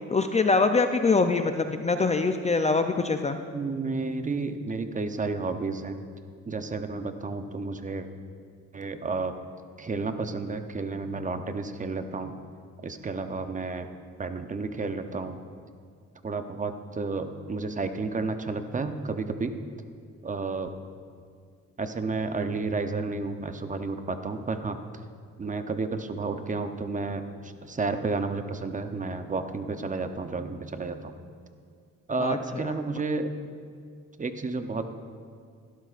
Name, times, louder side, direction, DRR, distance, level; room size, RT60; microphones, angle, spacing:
voice 1, 0.1-3.4 32.2-32.7, left 4 dB, 25° left, 7 dB, 0.5 m, -24 dB
voice 2, 3.5-6.0 6.5-8.1 8.7-9.3 9.8-12.3 12.8-13.9 14.2-15.4 16.2-19.5 20.2-20.7 21.8-24.8 25.4-31.1 32.1-33.3 34.2-34.9, right 3 dB, 25° right, 8 dB, 0.7 m, -31 dB
15.0 x 12.0 x 2.5 m, 2.1 s
cardioid pair, 90°, 30 cm